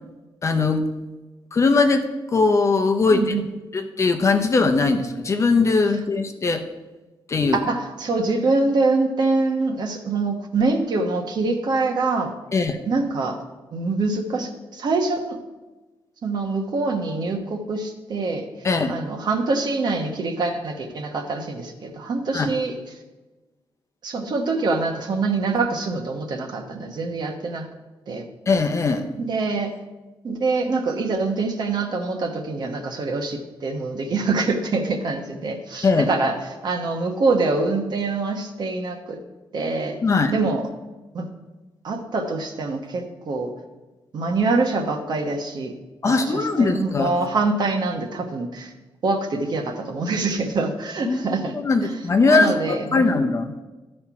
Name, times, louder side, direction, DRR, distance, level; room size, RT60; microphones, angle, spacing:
voice 1, 0.4-0.9 1.5-3.3 3.7-6.6 7.3-7.6 12.5-12.8 18.6-18.9 22.3-22.5 28.5-29.1 35.8-36.1 40.0-40.3 46.0-47.1 51.0-53.5, left 4 dB, 35° left, 6 dB, 0.7 m, -20 dB
voice 2, 3.1-3.4 7.5-12.3 12.9-13.4 13.7-15.4 16.2-18.5 18.9-22.8 24.0-27.7 28.1-28.3 29.2-29.7 30.2-39.2 39.5-40.0 40.3-40.7 41.1-41.3 41.8-43.5 44.1-45.7 46.1-48.7 49.0-51.5 51.8-52.0 52.2-53.2, right 3 dB, 55° right, 4 dB, 1.1 m, -25 dB
12.5 x 4.4 x 5.9 m, 1.2 s
wide cardioid pair, 150°, 9 cm